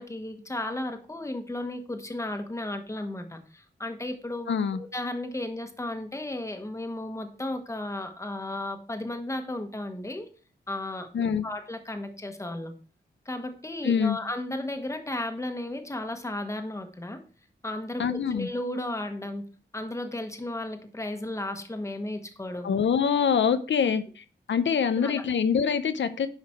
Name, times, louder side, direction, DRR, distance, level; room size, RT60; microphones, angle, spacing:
voice 1, 0.0-10.3 10.7-12.7 13.2-17.2 17.6-19.4 19.7-22.8 23.8-24.0 25.0-25.2, left 1 dB, 15° left, 1.2 m, -34 dB
voice 2, 4.5-4.8 11.1-11.4 13.8-14.2 18.0-18.5 22.6-24.0 24.5-26.3, left 7 dB, 85° left, 0.7 m, -24 dB
10.5 x 5.2 x 4.4 m
wide cardioid pair, 130°, 19 cm